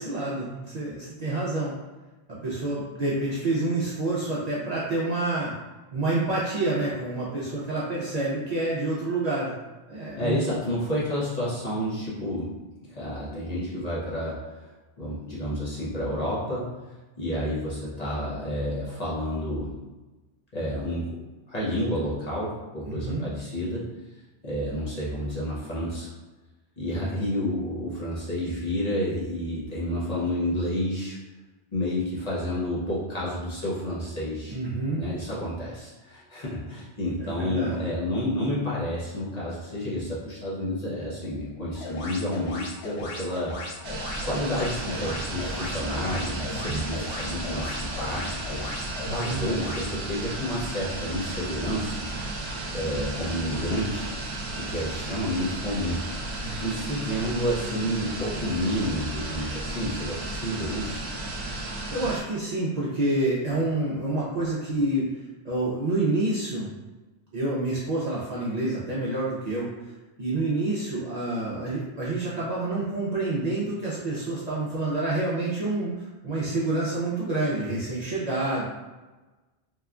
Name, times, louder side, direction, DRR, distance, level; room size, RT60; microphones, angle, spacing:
voice 1, 0.0-1.7 2.3-5.5 5.9-9.5 9.9-10.5 22.9-23.3 34.5-35.0 37.2-37.8 46.4-46.8 49.0-49.4 56.4-56.6 58.0-58.1 61.9-65.1 65.4-66.7 67.3-69.7 70.2-78.6, right 2 dB, 50° right, -8 dB, 0.5 m, -28 dB
voice 2, 10.2-12.5 12.8-14.7 15.0-16.7 17.2-19.7 20.5-21.2 21.5-23.9 24.4-26.1 26.8-31.2 31.7-34.6 35.0-43.5 44.2-52.1 52.7-54.1 54.6-56.0 56.6-61.0, equal, 45° left, -8 dB, 0.7 m, -30 dB
sound 1, 41.8-49.9, left 2 dB, 80° left, 0.8 m, -38 dB
sound 2, 43.8-62.2, right 2 dB, 80° right, 0.9 m, -34 dB
2.8 x 2.2 x 2.4 m, 1.2 s
omnidirectional pair, 1.1 m